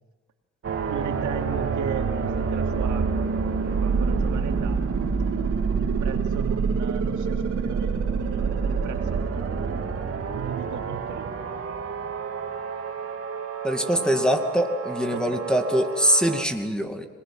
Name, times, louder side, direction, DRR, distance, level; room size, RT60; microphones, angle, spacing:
sound 1, 0.6-16.4, right 5 dB, 50° right, 3.1 m, -27 dB
voice 1, 0.9-3.1 3.6-4.8 5.8-11.4 14.0-14.4 15.1-15.4, right 8 dB, 75° right, 3 dB, 2.9 m, -36 dB
voice 2, 13.6-17.1, equal, 5° left, 6 dB, 2.4 m, -23 dB
26.0 x 20.0 x 7.8 m, 1.3 s
cardioid pair, 90°, 30 cm